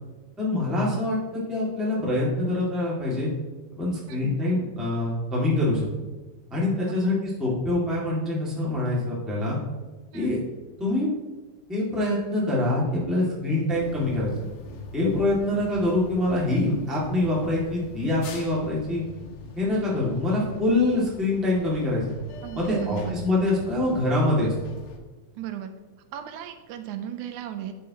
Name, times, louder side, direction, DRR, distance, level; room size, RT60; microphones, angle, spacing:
voice 1, 0.4-3.3 3.7-5.9 6.5-9.6 10.1-10.4 10.8-11.1 11.7-14.3 14.9-19.0 19.5-22.1 22.5-24.5, left 2 dB, ahead, -5 dB, 1.0 m, -25 dB
sound 1, 13.7-25.0, left 4 dB, 85° left, 1.2 m, -42 dB
voice 2, 22.4-23.2 25.4-25.7 26.1-27.7, right 11 dB, 85° right, 8 dB, 2.0 m, -35 dB
9.9 x 5.5 x 2.8 m, 1.2 s
omnidirectional pair, 3.5 m